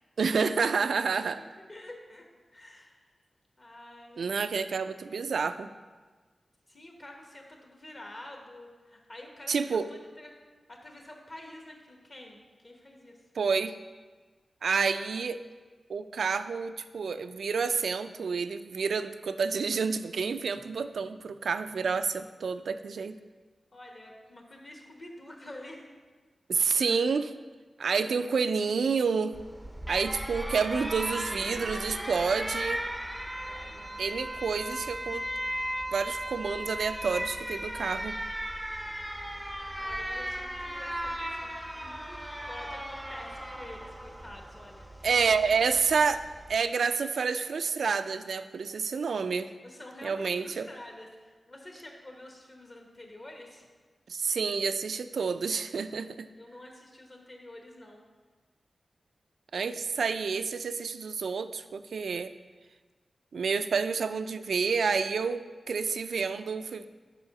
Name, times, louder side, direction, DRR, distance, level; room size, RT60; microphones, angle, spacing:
voice 1, 0.2-1.4 4.2-5.7 9.5-9.9 13.4-13.8 14.6-15.4 15.9-23.2 26.5-27.3 27.8-29.4 29.9-32.8 34.0-35.3 35.9-38.2 45.0-46.2 46.5-49.5 50.0-50.7 54.1-56.3 59.5-62.3 63.3-66.9, right 5 dB, 85° right, 11 dB, 0.3 m, -29 dB
voice 2, 1.1-2.2 2.5-3.0 3.6-4.2 6.7-10.3 10.7-12.4 12.6-13.2 23.7-25.9 26.8-27.0 27.9-28.1 33.5-34.0 37.7-38.0 39.8-45.1 45.4-45.6 49.6-53.7 56.4-58.0, left 1 dB, 40° left, 1 dB, 1.0 m, -48 dB
Alarm, 29.3-46.6, equal, 5° right, 0.5 m, -37 dB
6.8 x 4.8 x 5.7 m, 1.4 s
wide cardioid pair, 105°, 0 cm